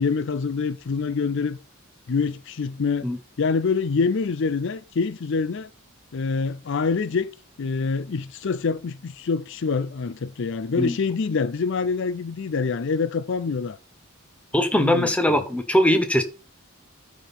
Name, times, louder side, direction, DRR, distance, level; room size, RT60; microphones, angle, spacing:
voice 1, 0.0-1.6 2.1-3.1 3.4-5.7 6.1-7.3 7.6-13.8 14.8-15.4, left 4 dB, 60° left, 0.5 m, -25 dB
voice 2, 14.5-16.2, left 1 dB, 5° left, 1.0 m, -20 dB
13.0 x 5.3 x 4.2 m
head